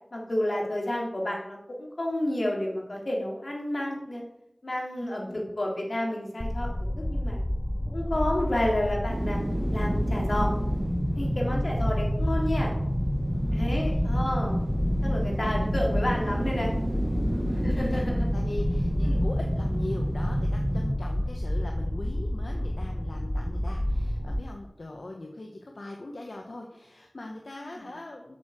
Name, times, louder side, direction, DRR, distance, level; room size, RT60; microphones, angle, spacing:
voice 1, 0.1-4.2 4.6-7.4 7.9-9.4 9.7-10.5 11.2-12.7 13.5-14.6 15.0-16.7 17.6-18.3 19.1-19.2 27.6-27.9, left 1 dB, 70° left, -2 dB, 3.5 m, -30 dB
voice 2, 5.0-5.4 11.2-11.6 13.3-14.0 17.2-17.6 17.9-28.4, left 2 dB, 90° left, 1 dB, 1.1 m, -41 dB
sound 1, 6.4-24.4, left 1 dB, 20° left, 0.7 m, -29 dB
sound 2, 9.1-22.1 22.5-22.6, right 1 dB, 60° right, 1.5 m, -31 dB
8.1 x 6.6 x 7.4 m, 0.83 s
wide cardioid pair, 45°, 0 cm